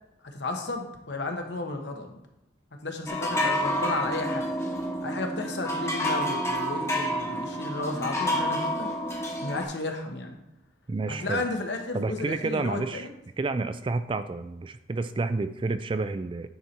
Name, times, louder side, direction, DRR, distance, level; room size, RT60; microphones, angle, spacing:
voice 1, 0.2-2.2 2.8-4.5 5.0-8.9 9.4-10.4 11.1-13.1, left 2 dB, 70° left, 4 dB, 1.1 m, -33 dB
sound 1, 3.1-9.6, equal, 15° left, 0.9 m, -29 dB
voice 2, 10.9-11.4 11.9-13.1 13.4-16.5, right 3 dB, 30° right, 11 dB, 0.3 m, -30 dB
9.6 x 4.2 x 4.4 m, 0.84 s
head